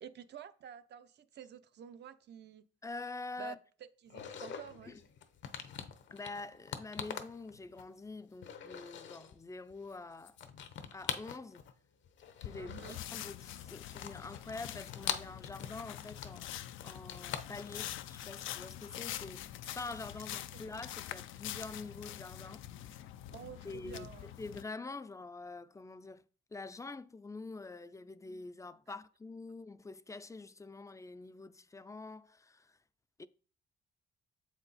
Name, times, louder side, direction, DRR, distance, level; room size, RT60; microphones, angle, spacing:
voice 1, 0.0-2.6 3.4-3.6 4.0-4.9 12.6-13.0 20.5-20.6 23.3-24.3, right 9 dB, 60° right, 0.7 m, -50 dB
voice 2, 2.8-3.6 4.9-5.0 6.1-10.5 10.9-11.6 12.4-12.7 13.1-16.5 16.8-22.9 23.6-26.2 26.5-32.8 33.2-33.3, left 3 dB, 15° left, 0.4 m, -46 dB
sound 1, 4.1-8.1 8.3-9.4 9.7-11.8 12.0-13.2 13.6-19.0, left 8 dB, 70° left, 0.8 m, -44 dB
sound 2, 12.4-24.6, left 12 dB, 85° left, 0.5 m, -45 dB
7.2 x 4.4 x 4.1 m
cardioid pair, 90°, 20 cm